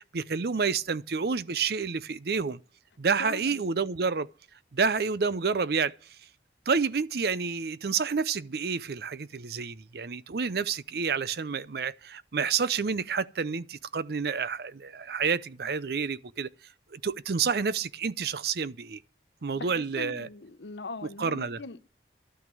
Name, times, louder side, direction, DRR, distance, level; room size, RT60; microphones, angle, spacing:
voice 1, 0.0-2.6 3.0-4.3 4.7-5.9 6.7-16.5 16.9-19.0 19.4-20.3 21.2-21.6, right 5 dB, 60° right, 0.6 m, -29 dB
voice 2, 3.2-3.6 19.5-21.9, left 3 dB, 80° left, 0.8 m, -41 dB
12.5 x 9.2 x 7.6 m
head